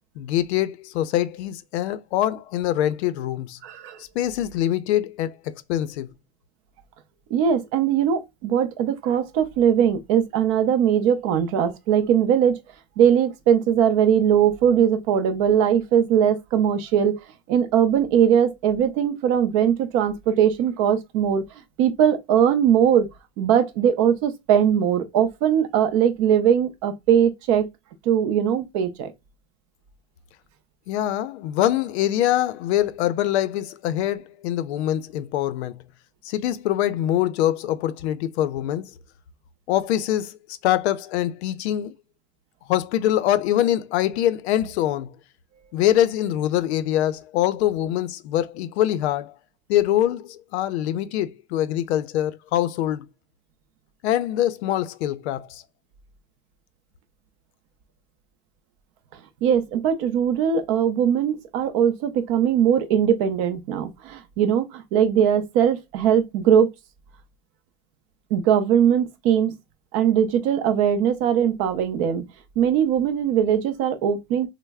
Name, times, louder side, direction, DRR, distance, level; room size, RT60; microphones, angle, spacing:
voice 1, 0.2-3.6 4.0-6.1 30.9-35.7 36.2-38.9 39.7-40.4 40.6-41.9 42.7-45.1 45.7-49.3 49.7-53.1 54.0-55.6, left 12 dB, 85° left, 0.5 m, -24 dB
voice 2, 3.6-4.0 7.3-12.6 13.0-17.2 17.5-21.4 21.8-23.1 23.4-27.7 28.1-29.1 59.4-66.7 68.3-69.6 69.9-72.2 72.6-74.5, right 8 dB, 30° right, 0.4 m, -20 dB
3.2 x 2.0 x 3.3 m
supercardioid pair, 175°, 32 cm